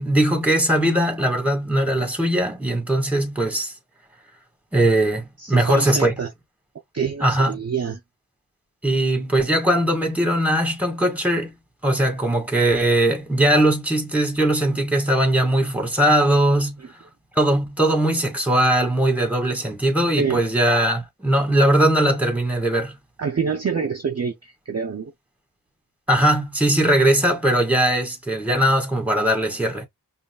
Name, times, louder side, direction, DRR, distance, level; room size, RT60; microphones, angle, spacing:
voice 1, 0.0-3.7 4.7-6.1 7.2-7.5 8.8-11.5 11.8-16.8 17.3-22.9 26.1-29.9, right 1 dB, 5° right, 1.4 m, -20 dB
voice 2, 5.4-6.3 6.9-8.0 20.2-20.4 23.2-25.1, right 6 dB, 35° right, 0.5 m, -26 dB
5.2 x 2.3 x 2.3 m
wide cardioid pair, 45°, 42 cm